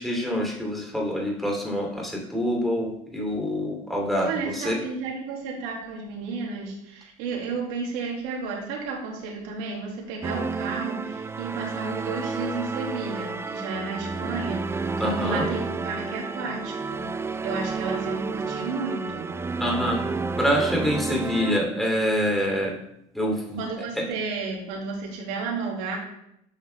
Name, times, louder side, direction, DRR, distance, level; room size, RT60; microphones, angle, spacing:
voice 1, 0.0-4.8 15.0-15.4 19.6-20.0 20.4-22.7 23.1-23.6 24.0-24.1, equal, ahead, -1 dB, 3.1 m, -26 dB
voice 2, 4.2-19.3 23.6-26.0, right 4 dB, 75° right, -1 dB, 2.4 m, -32 dB
sound 1, 10.2-21.6, right 4 dB, 15° right, 0.4 m, -31 dB
8.8 x 5.3 x 3.5 m, 0.79 s
hypercardioid pair, 80°, 18 cm